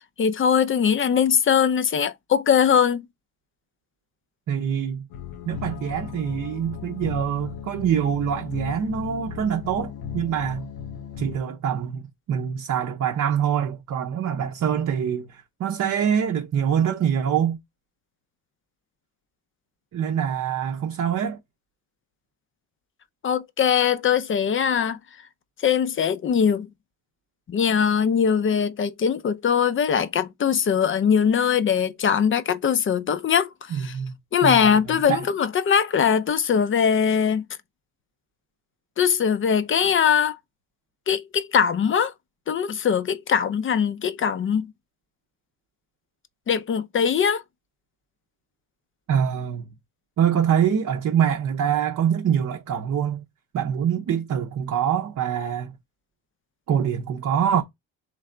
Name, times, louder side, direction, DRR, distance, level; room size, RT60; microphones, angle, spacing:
voice 1, 0.2-3.1 23.2-25.0 25.6-26.7 27.5-34.0 34.3-37.5 39.0-40.4 41.1-42.1 42.5-44.7 46.5-47.4, left 7 dB, 35° left, 0.5 m, -21 dB
voice 2, 4.5-5.1 5.5-10.7 11.2-12.0 12.3-17.6 19.9-21.4 33.7-34.2 34.4-35.2 49.1-49.7 50.2-53.2 53.5-55.8 56.7-57.6, right 8 dB, 50° right, 0.6 m, -24 dB
sound 1, 5.1-11.4, left 8 dB, 85° left, 0.7 m, -36 dB
3.3 x 3.3 x 3.7 m
cardioid pair, 110°, 36 cm